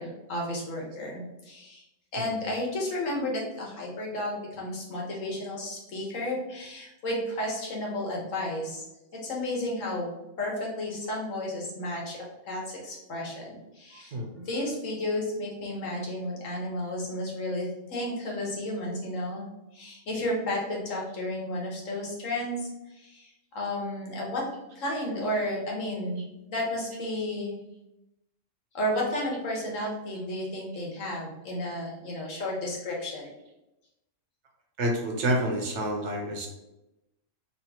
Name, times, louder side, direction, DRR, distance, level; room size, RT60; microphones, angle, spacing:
voice 1, 0.0-1.8 2.1-8.8 9.1-10.1 10.4-12.2 12.5-19.5 19.7-24.4 24.7-26.2 26.5-27.6 28.7-33.3, left 1 dB, 80° left, -2 dB, 1.5 m, -32 dB
voice 2, 34.8-36.5, right 1 dB, 65° right, 1 dB, 1.1 m, -28 dB
4.4 x 3.0 x 2.9 m, 0.94 s
omnidirectional pair, 1.3 m